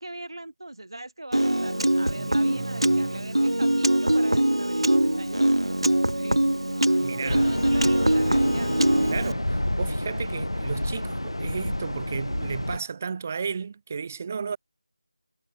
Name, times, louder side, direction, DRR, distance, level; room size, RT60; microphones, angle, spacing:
voice 1, 0.0-6.6 7.2-8.7, right 2 dB, 65° right, 6.5 m, -40 dB
Piano, 1.3-9.3, right 1 dB, 90° right, 1.7 m, -23 dB
voice 2, 2.1-3.3 7.0-7.5 9.1-14.6, right 5 dB, 25° right, 7.4 m, -34 dB
sound 1, 7.3-12.8, left 1 dB, 90° left, 4.0 m, -29 dB
figure-of-eight pair, 170°, 3 cm